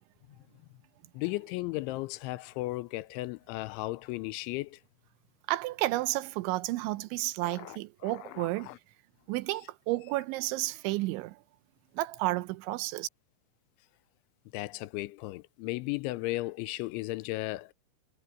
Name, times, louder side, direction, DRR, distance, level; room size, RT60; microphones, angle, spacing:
voice 1, 1.1-4.8 7.4-7.8 8.0-8.8 14.5-17.7, left 20 dB, 85° left, 3.0 m, -35 dB
voice 2, 5.5-8.7 9.3-11.4 11.9-13.1, right 18 dB, 85° right, 3.1 m, -31 dB
omnidirectional pair, 5.4 m